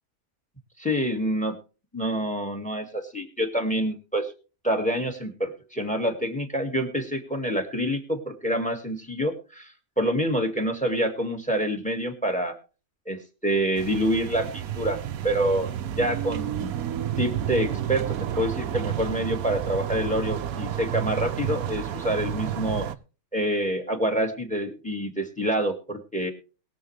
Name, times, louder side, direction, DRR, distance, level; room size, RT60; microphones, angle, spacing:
voice 1, 0.8-1.6 1.9-4.3 4.6-9.7 10.0-12.6 13.1-15.0 15.2-15.7 16.0-16.7 17.2-22.9 23.3-26.3, equal, 5° left, 5 dB, 1.9 m, -27 dB
sound 1, 13.8-23.0, right 10 dB, 75° right, 1.2 m, -30 dB
21.5 x 7.3 x 3.3 m, 0.35 s
omnidirectional pair, 1.6 m